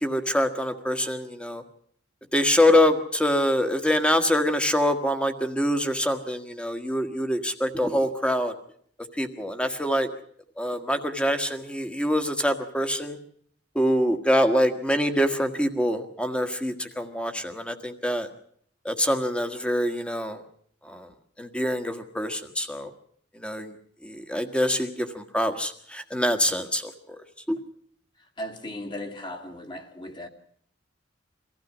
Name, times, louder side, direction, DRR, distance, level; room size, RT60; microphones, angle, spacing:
voice 1, 0.0-1.6 2.3-8.5 9.2-10.1 10.6-13.2 13.7-18.3 18.8-20.4 20.9-21.1 21.4-22.9 23.4-23.7 24.0-27.2 27.5-27.6, equal, 5° left, 1.6 m, -25 dB
voice 2, 28.4-30.3, left 1 dB, 25° left, 2.2 m, -36 dB
24.0 x 15.5 x 7.4 m
head